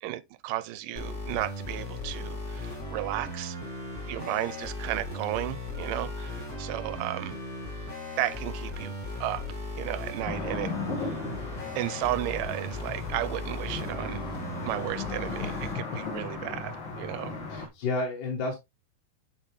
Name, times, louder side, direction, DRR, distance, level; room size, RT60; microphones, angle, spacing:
voice 1, 0.0-3.6 4.1-7.4 8.2-9.0 9.2-9.5 9.8-10.7 11.0-11.2 11.8-14.2 14.6-17.6, right 14 dB, 90° right, 2.3 m, -34 dB
sound 1, 1.0-15.8, left 1 dB, 30° left, 3.0 m, -37 dB
sound 2, 2.1-13.7, right 2 dB, 50° right, 0.6 m, -52 dB
sound 3, 10.3-17.7, left 4 dB, 45° left, 1.8 m, -36 dB
voice 2, 15.4-16.0 17.5-18.6, left 3 dB, 75° left, 2.9 m, -32 dB
10.0 x 4.2 x 3.1 m
omnidirectional pair, 3.8 m